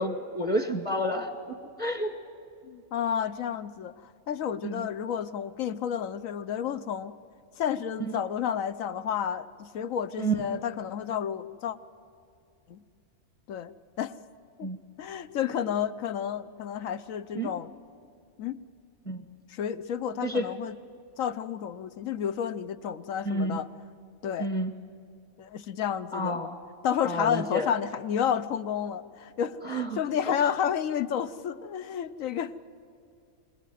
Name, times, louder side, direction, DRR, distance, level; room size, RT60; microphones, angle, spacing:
voice 1, 0.0-2.1 4.6-4.9 8.0-8.1 10.2-10.4 14.6-14.8 17.3-17.5 19.0-19.2 20.2-20.5 23.2-23.6 24.4-24.7 26.1-26.6 27.0-27.7 29.6-30.0 30.3-30.4, right 1 dB, 25° left, 7 dB, 1.6 m, -30 dB
voice 2, 2.6-3.9 4.3-7.1 7.6-11.8 12.7-12.8 13.5-14.1 14.6-14.7 15.0-17.7 18.4-18.6 19.5-20.8 21.2-23.7 24.2-24.5 25.4-26.4 26.8-32.5, left 8 dB, 70° left, 14 dB, 1.2 m, -31 dB
26.5 x 19.5 x 9.3 m, 2.6 s
omnidirectional pair, 1.4 m